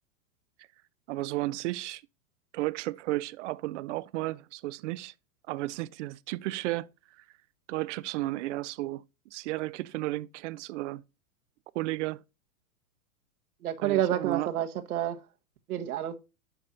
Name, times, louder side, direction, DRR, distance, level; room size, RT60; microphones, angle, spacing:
voice 1, 1.1-2.0 2.5-5.1 5.5-6.9 7.2-7.3 7.7-9.0 9.3-11.0 11.7-12.2 13.8-14.5, right 18 dB, 55° right, 0.6 m, -33 dB
voice 2, 13.6-15.2 15.7-16.2, right 11 dB, 85° right, 1.3 m, -29 dB
10.0 x 6.0 x 2.5 m
hypercardioid pair, 140°, 43 cm